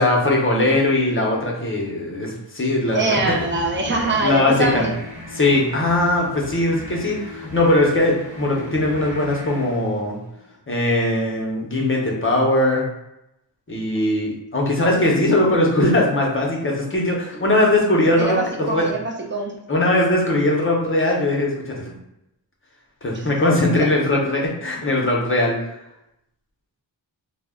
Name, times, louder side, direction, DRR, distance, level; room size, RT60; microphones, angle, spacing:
voice 1, 0.0-3.5 3.9-4.9 5.3-10.2 10.7-12.9 13.7-18.9 19.7-22.0 23.0-25.5, left 1 dB, 30° left, -2 dB, 0.7 m, -20 dB
sound 1, 2.8-10.6, left 2 dB, 60° right, 1.0 m, -36 dB
voice 2, 2.9-4.9 18.2-19.6 19.9-20.0 23.1-23.3 23.8-23.9, right 2 dB, 25° right, 0 dB, 0.5 m, -23 dB
2.2 x 2.1 x 3.5 m, 0.85 s
wide cardioid pair, 115°, 44 cm